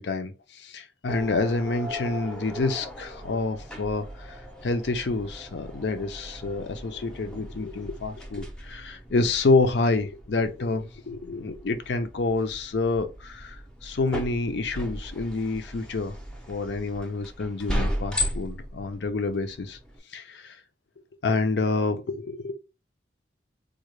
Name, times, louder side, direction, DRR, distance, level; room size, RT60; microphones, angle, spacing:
voice 1, 0.0-13.6 13.8-16.1 16.5-19.8 20.1-20.6 21.2-22.5, left 3 dB, 65° left, 0.5 m, -28 dB
sound 1, 1.1-20.0, equal, 5° left, 0.5 m, -37 dB
3.7 x 2.2 x 3.1 m
head